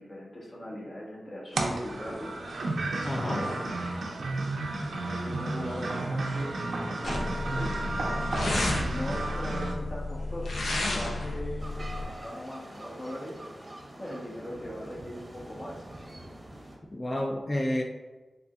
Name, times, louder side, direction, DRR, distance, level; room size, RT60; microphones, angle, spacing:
voice 1, 0.0-2.3 3.1-3.6 4.7-7.9 8.8-13.3 14.0-16.0, equal, 50° left, -6 dB, 1.4 m, -40 dB
sound 1, 1.5-9.7, right 2 dB, 90° right, 0.4 m, -32 dB
voice 2, 3.0-3.5 16.9-17.8, left 1 dB, 35° left, 1 dB, 0.4 m, -29 dB
sound 2, 7.0-12.0, left 2 dB, 80° left, 0.5 m, -32 dB
sound 3, 11.6-16.8, right 1 dB, 25° right, 0.7 m, -45 dB
3.7 x 3.4 x 2.3 m, 1.2 s
cardioid pair, 60°, 0 cm